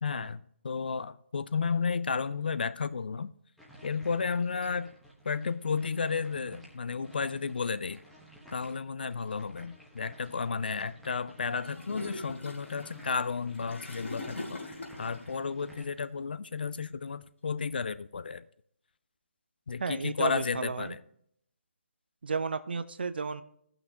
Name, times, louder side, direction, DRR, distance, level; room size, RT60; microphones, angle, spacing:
voice 1, 0.0-3.3 3.8-4.9 5.2-8.0 8.5-18.4 19.7-21.0, left 5 dB, 45° left, 15 dB, 0.3 m, -33 dB
sound 1, 3.6-15.8, right 1 dB, ahead, 1.0 m, -54 dB
Gurgling / Toilet flush, 11.6-15.4, left 2 dB, 70° left, 2.8 m, -42 dB
voice 2, 19.8-20.9 22.2-23.4, right 5 dB, 50° right, 13 dB, 0.5 m, -33 dB
16.5 x 5.9 x 2.8 m, 0.68 s
figure-of-eight pair, 145°, 7 cm